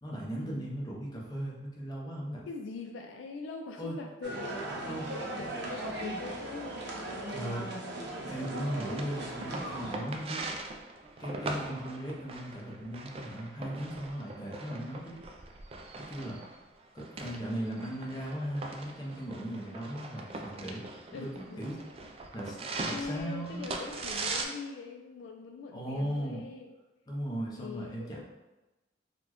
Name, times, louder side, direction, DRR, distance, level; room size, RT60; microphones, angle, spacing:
voice 1, 0.0-2.4 3.8-4.0 4.8-5.1 7.3-7.7 8.3-10.4 11.2-15.2 16.0-16.4 16.9-20.8 21.1-21.3 21.6-21.8 22.3-23.6 25.7-26.5 27.1-28.2, equal, 20° left, -4 dB, 0.7 m, -37 dB
voice 2, 2.5-7.4 21.1-21.8 22.9-26.7 27.6-28.2, left 4 dB, 75° left, 3 dB, 0.3 m, -43 dB
sound 1, 4.2-10.0, right 2 dB, 65° right, 0.6 m, -38 dB
sound 2, 8.4-24.4, right 3 dB, 30° right, 0.3 m, -41 dB
4.1 x 2.1 x 2.9 m, 1.1 s
head